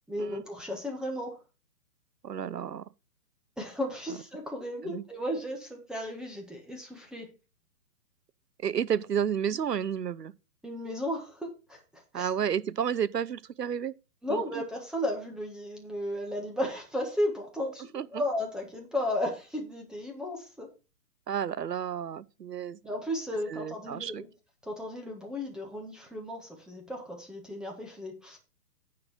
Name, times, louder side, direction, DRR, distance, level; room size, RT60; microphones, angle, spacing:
voice 1, 0.1-1.4 3.6-7.3 10.6-12.3 14.2-20.7 22.8-24.3 24.6-28.4, left 1 dB, ahead, 1.6 m, -34 dB
voice 2, 2.2-2.8 4.8-5.0 8.6-10.3 12.1-13.9 14.3-14.6 17.9-18.1 21.3-22.8 23.5-24.2, right 8 dB, 85° right, 0.8 m, -31 dB
9.5 x 4.8 x 5.9 m
figure-of-eight pair, 130°, 47 cm